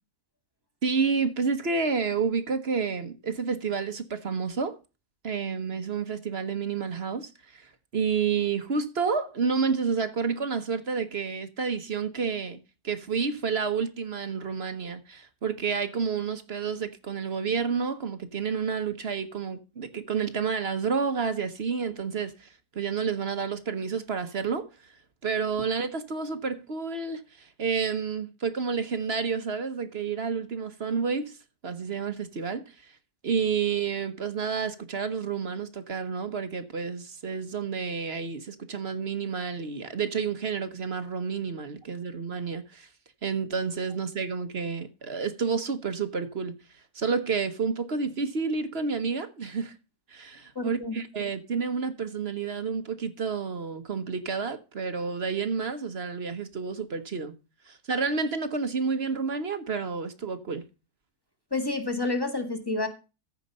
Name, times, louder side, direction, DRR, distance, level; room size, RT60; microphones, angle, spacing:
voice 1, 0.8-4.8 5.2-25.0 25.2-31.4 31.6-33.0 33.2-42.9 43.2-49.7 50.1-57.3 57.6-60.6, right 5 dB, 45° right, 1.2 m, -30 dB
voice 2, 50.5-51.0 61.5-62.9, left 2 dB, 15° left, 1.6 m, -29 dB
14.5 x 5.2 x 5.3 m
omnidirectional pair, 1.7 m